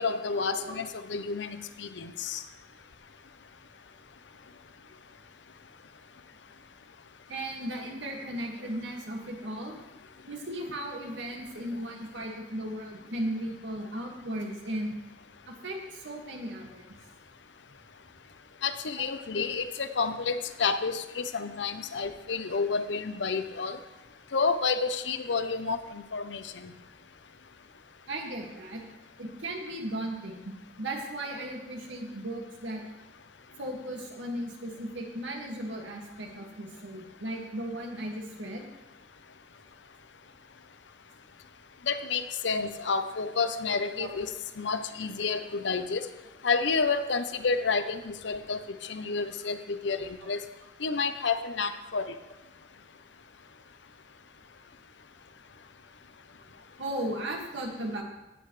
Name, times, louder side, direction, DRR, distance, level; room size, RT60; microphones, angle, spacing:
voice 1, 0.0-2.4 18.6-23.8 24.3-26.7 41.9-44.3 44.6-46.1 46.4-50.4 50.8-52.1, left 4 dB, 80° left, 10 dB, 0.7 m, -30 dB
voice 2, 7.3-9.8 10.3-15.0 15.5-16.9 19.0-19.1 19.4-19.5 28.1-28.8 29.2-32.8 33.6-38.7 44.0-44.2 56.8-58.0, right 1 dB, 90° right, 0 dB, 2.1 m, -36 dB
16.5 x 7.9 x 3.3 m, 1.0 s
head